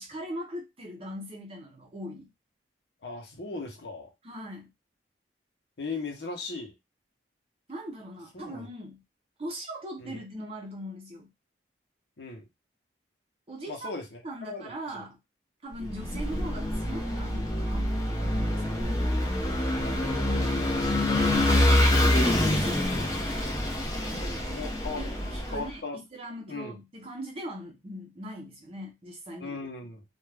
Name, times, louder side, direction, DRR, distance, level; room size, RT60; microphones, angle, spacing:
voice 1, 0.0-2.3 4.2-4.7 7.7-9.0 9.4-11.3 13.5-13.9 14.2-15.2 15.6-19.0 21.8-23.1 24.0-24.6 25.0-29.6, equal, 30° right, 0.6 m, -40 dB
voice 2, 3.0-4.1 5.8-6.7 8.3-8.7 10.0-10.2 12.2-12.4 13.7-15.0 15.8-15.9 18.6-18.8 19.8-21.6 23.0-23.1 24.5-25.0 25.5-26.0 26.5-26.8 29.4-30.0, left 3 dB, 70° left, 0.8 m, -39 dB
Vehicle / Engine, 15.8-25.6, left 1 dB, 20° left, 0.5 m, -26 dB
2.4 x 2.2 x 3.2 m
head